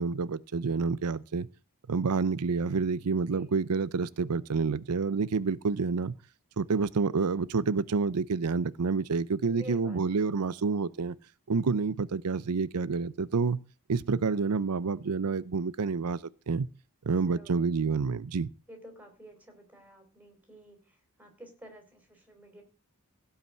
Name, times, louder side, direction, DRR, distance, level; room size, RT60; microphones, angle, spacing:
voice 1, 0.0-1.5 1.9-6.2 6.6-11.1 11.5-13.6 13.9-16.7 17.0-18.5, right 4 dB, 90° right, 0.6 m, -28 dB
voice 2, 9.4-10.0 10.3-10.4 17.1-17.9 18.7-22.6, right 1 dB, 5° right, 4.2 m, -51 dB
16.5 x 5.7 x 7.7 m
head